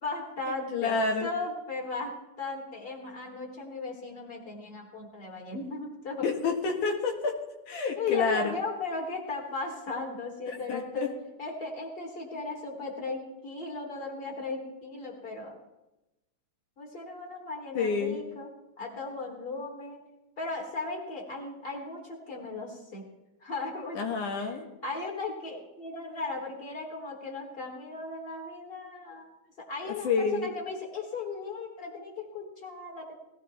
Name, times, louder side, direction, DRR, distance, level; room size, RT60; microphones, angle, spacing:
voice 1, 0.0-6.2 8.0-11.1 11.4-15.5 16.8-18.5 18.8-20.0 20.4-23.0 23.4-24.0 24.8-29.3 29.7-33.2, left 3 dB, 20° left, 1 dB, 3.1 m, -36 dB
voice 2, 0.7-1.3 6.2-7.4 7.7-8.5 10.5-11.1 17.7-18.2 24.0-24.7 29.9-30.5, left 4 dB, 75° left, 2 dB, 3.2 m, -29 dB
19.0 x 17.5 x 3.4 m, 0.95 s
omnidirectional pair, 3.6 m